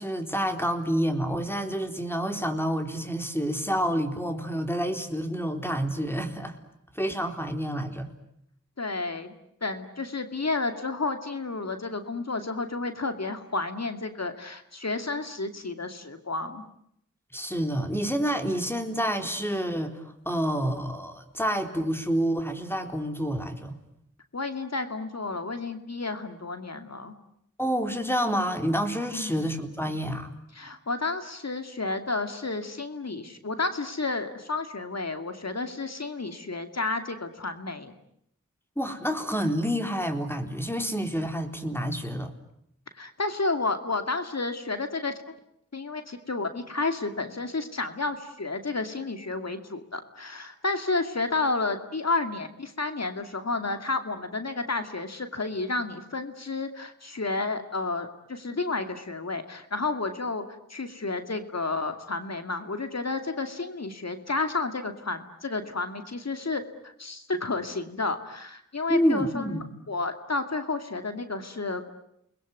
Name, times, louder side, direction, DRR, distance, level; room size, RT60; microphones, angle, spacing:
voice 1, 0.0-6.6 6.9-8.1 17.3-23.8 27.6-30.3 38.8-42.3 68.9-69.6, equal, 5° left, 6 dB, 3.9 m, -28 dB
voice 2, 8.8-9.3 9.6-16.6 24.3-27.1 29.1-29.5 30.5-37.9 42.9-45.1 45.7-60.4 60.7-71.9, left 3 dB, 55° left, 8 dB, 2.5 m, -31 dB
29.5 x 21.0 x 9.5 m, 0.74 s
cardioid pair, 45°, 31 cm